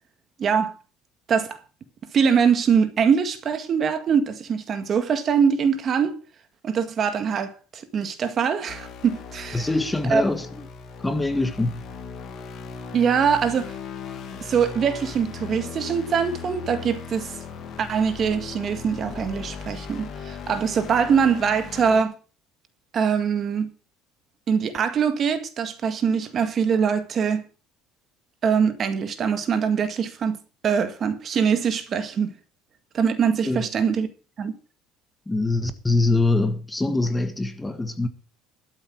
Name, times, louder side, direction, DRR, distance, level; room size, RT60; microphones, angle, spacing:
voice 1, 0.4-0.7 1.3-1.6 2.1-6.1 6.6-9.7 10.1-10.2 12.9-13.7 14.4-17.3 17.8-22.1 22.9-23.7 24.5-27.4 28.4-30.4 30.6-32.3 32.9-34.1 34.4-34.5, right 6 dB, 40° right, 1.7 m, -23 dB
sound 1, 8.7-22.0, left 5 dB, 45° left, 2.6 m, -38 dB
voice 2, 9.5-10.6 11.0-11.8 33.4-33.6 35.3-38.1, left 2 dB, 10° left, 1.4 m, -24 dB
12.5 x 8.0 x 6.0 m
cardioid pair, 125°, 0 cm